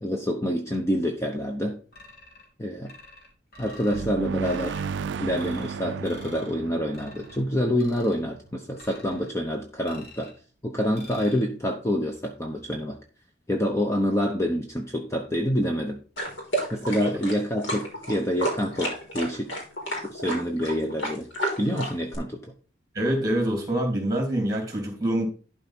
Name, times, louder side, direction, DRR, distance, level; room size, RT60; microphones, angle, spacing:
voice 1, 0.0-1.8 2.6-2.9 3.6-4.8 5.2-10.3 10.6-13.0 13.5-16.0 16.7-19.6 20.0-21.3 21.6-22.4, equal, 15° left, 2 dB, 0.8 m, -27 dB
sound 1, 1.9-2.5 2.9-4.1 4.4-4.9 5.3-5.8 6.0-6.6 6.9-7.4 7.8-8.2 8.8-9.3 9.8-10.4 10.9-11.4, left 1 dB, 55° left, 2.8 m, -48 dB
sound 2, 3.9-8.5, right 6 dB, 70° right, 0.3 m, -34 dB
sound 3, 16.2-22.2, right 1 dB, 90° left, 3.8 m, -31 dB
voice 2, 22.9-25.3, right 1 dB, 20° right, 2 dB, 3.0 m, -25 dB
11.5 x 4.9 x 4.3 m, 0.37 s
head